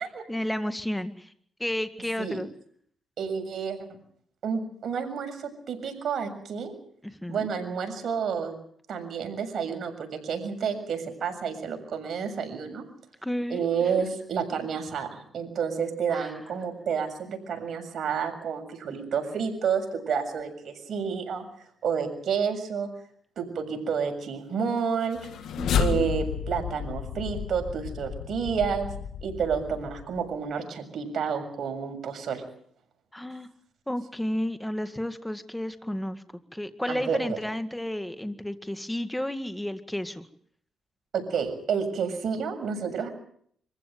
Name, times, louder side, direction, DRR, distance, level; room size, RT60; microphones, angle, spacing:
voice 1, 0.3-1.3 1.6-2.5 7.2-7.5 13.2-13.8 16.1-16.3 25.6-26.1 33.1-33.5 33.9-36.2 36.5-40.2, left 1 dB, 5° left, 9 dB, 2.0 m, -32 dB
voice 2, 3.2-3.8 4.4-6.7 7.3-8.5 8.9-12.8 13.5-21.4 21.8-22.9 23.4-25.3 25.8-28.9 29.2-32.4 36.9-37.4 41.1-43.1, right 6 dB, 55° right, 5 dB, 7.0 m, -30 dB
sound 1, 25.0-30.4, left 8 dB, 70° left, 1.5 m, -32 dB
26.0 x 15.5 x 9.3 m, 0.64 s
cardioid pair, 90°, 0 cm